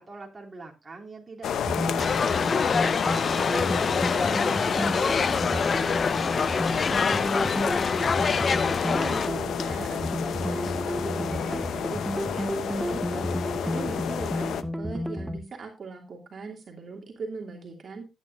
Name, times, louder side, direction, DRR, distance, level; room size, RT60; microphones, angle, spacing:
voice 1, 0.0-2.4 2.8-7.9, right 3 dB, 25° right, -1 dB, 3.2 m, -43 dB
sound 1, 1.4-14.6, left 8 dB, 90° left, 0.7 m, -32 dB
sound 2, 1.7-15.4, equal, 5° right, 1.2 m, -31 dB
sound 3, 2.0-9.3, left 5 dB, 45° left, 0.5 m, -26 dB
voice 2, 8.4-18.1, right 4 dB, 50° right, 1 dB, 2.8 m, -40 dB
12.0 x 9.5 x 2.7 m, 0.26 s
wide cardioid pair, 125°, 0 cm